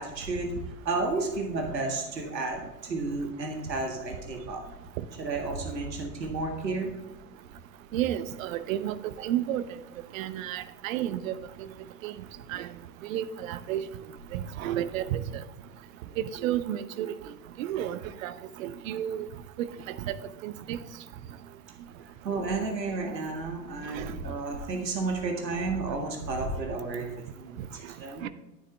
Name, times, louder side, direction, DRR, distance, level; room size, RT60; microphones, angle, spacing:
voice 1, 0.0-4.6 5.2-6.9 22.2-27.6 28.0-28.3, right 3 dB, 80° right, 2 dB, 1.9 m, -32 dB
voice 2, 7.9-8.9 9.2-9.6 10.1-11.3 12.0-12.1 12.5-12.7 13.1-13.8 14.3-15.2 16.4-17.1 17.6-18.3 18.6-19.3 19.6-20.8 24.0-24.1 28.2-28.3, right 11 dB, 55° right, 14 dB, 0.8 m, -31 dB
11.5 x 9.5 x 3.3 m, 1.0 s
figure-of-eight pair, 95°, 50 cm